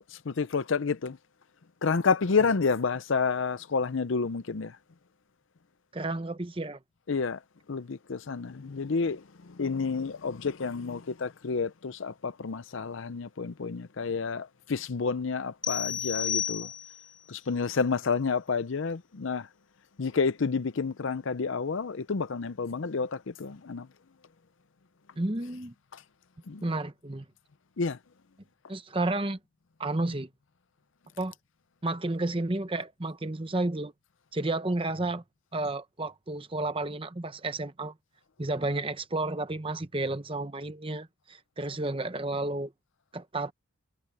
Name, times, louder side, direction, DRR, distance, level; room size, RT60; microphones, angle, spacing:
voice 1, 0.1-1.2 1.8-4.8 7.1-7.4 7.7-16.7 17.3-19.5 20.0-23.9 25.9-26.0 26.5-26.6 27.8-28.0, left 5 dB, 65° left, 0.6 m, -29 dB
voice 2, 5.9-6.8 25.2-25.7 26.6-27.2 28.7-29.4 29.8-30.3 31.2-31.3 31.8-33.9 34.3-35.2 35.5-37.9 38.4-42.7 43.1-43.5, right 2 dB, 25° right, 0.8 m, -31 dB
sound 1, 15.6-17.2, left 9 dB, 20° left, 0.6 m, -32 dB
head